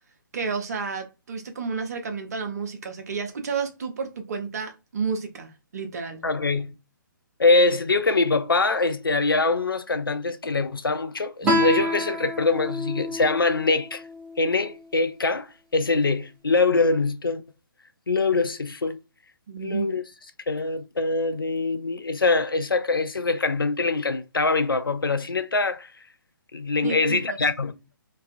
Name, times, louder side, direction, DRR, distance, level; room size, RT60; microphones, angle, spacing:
voice 1, 0.3-6.2 19.5-19.9 26.8-27.4, right 5 dB, 45° right, 0.7 m, -31 dB
voice 2, 6.2-6.7 7.4-14.0 14.4-17.4 18.1-19.0 19.6-20.0 20.5-25.9 26.5-27.7, left 3 dB, 80° left, 0.4 m, -23 dB
Guitar, 11.4-14.7, left 1 dB, 10° right, 0.6 m, -28 dB
2.4 x 2.3 x 2.4 m
figure-of-eight pair, 135°, 12 cm